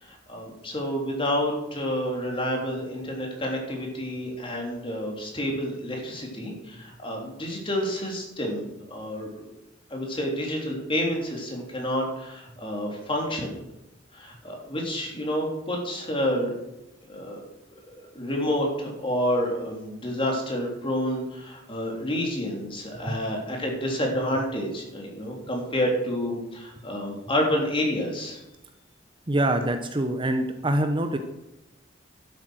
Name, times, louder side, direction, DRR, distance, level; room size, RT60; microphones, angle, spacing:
voice 1, 0.0-9.4 9.9-13.6 14.1-16.5 17.1-17.4 17.9-28.4, equal, 30° left, 0 dB, 3.3 m, -29 dB
voice 2, 29.3-31.2, right 1 dB, 25° right, 7 dB, 0.8 m, -25 dB
12.0 x 8.4 x 6.3 m, 0.94 s
head